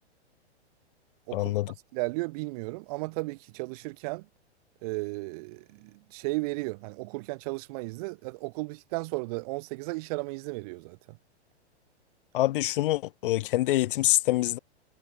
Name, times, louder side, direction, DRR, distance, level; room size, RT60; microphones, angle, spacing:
voice 1, 1.3-1.7 12.3-14.6, left 16 dB, 55° left, 0.5 m, -25 dB
voice 2, 1.9-4.3 4.8-11.0, right 25 dB, 35° right, 0.6 m, -34 dB
hypercardioid pair, 120°, 33 cm